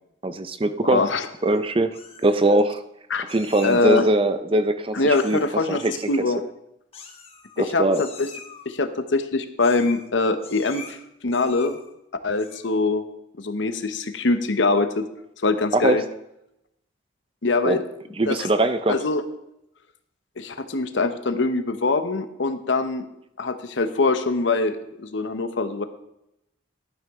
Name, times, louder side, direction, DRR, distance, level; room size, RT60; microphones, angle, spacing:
voice 1, 0.2-1.0 1.4-2.0 2.2-2.8 3.3-5.4 5.7-5.9 7.6-8.0 15.7-16.0 17.6-17.8 18.2-19.0, right 1 dB, 30° right, 11 dB, 0.5 m, -21 dB
voice 2, 0.8-1.3 3.1-3.3 3.6-4.0 4.9-6.4 7.6-8.3 8.7-11.0 11.2-11.8 12.2-13.0 13.4-15.0 15.4-16.0 17.4-17.8 18.3-18.4 18.9-19.2 20.4-23.0 23.4-25.8, left 3 dB, 75° left, 9 dB, 0.9 m, -23 dB
Meow, 1.2-1.6 1.9-2.6 3.3-4.1 5.1-5.5 5.8-6.2 6.9-7.6 7.9-8.7 9.6-10.1 10.4-10.9 11.3-11.9 12.3-12.7, left 6 dB, 30° left, 1.3 m, -43 dB
12.0 x 9.3 x 3.6 m, 0.83 s
head